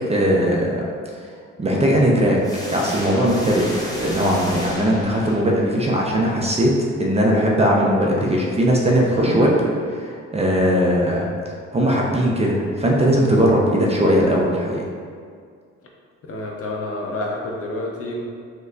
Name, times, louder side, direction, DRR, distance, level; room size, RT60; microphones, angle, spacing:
voice 1, 0.1-0.8 1.6-2.4 2.7-6.7 7.0-9.5 10.0-11.3 11.7-14.8, equal, 20° right, -2 dB, 0.4 m, -19 dB
sound 1, 2.4-5.8, equal, 10° left, 0.7 m, -32 dB
sound 2, 9.1-9.6 10.7-11.2 12.0-13.0 13.7-14.1, equal, 65° left, 1.5 m, -34 dB
voice 2, 16.2-18.2, left 2 dB, 50° left, -1 dB, 0.6 m, -28 dB
3.1 x 2.2 x 3.7 m, 2.1 s
cardioid pair, 90°, 30 cm